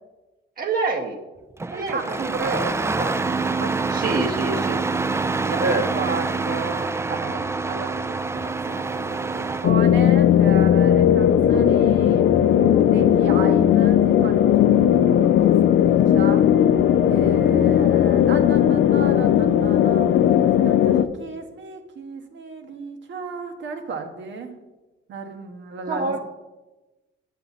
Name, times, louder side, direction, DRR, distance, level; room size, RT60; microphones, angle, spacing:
voice 1, 0.6-1.2 1.7-2.7 3.0-3.1 3.9-4.8 5.6-5.8 25.9-26.2, right 3 dB, 45° right, 1 dB, 0.9 m, -26 dB
Engine starting, 1.6-9.7, right 3 dB, 15° right, 0.3 m, -26 dB
voice 2, 1.9-12.3 12.8-16.5 17.1-24.6 25.1-26.1, right 4 dB, 70° right, 5 dB, 1.2 m, -34 dB
sound 1, 9.6-21.1, left 10 dB, 65° left, 0.5 m, -17 dB
8.2 x 6.6 x 4.1 m, 1.1 s
cardioid pair, 90°, 20 cm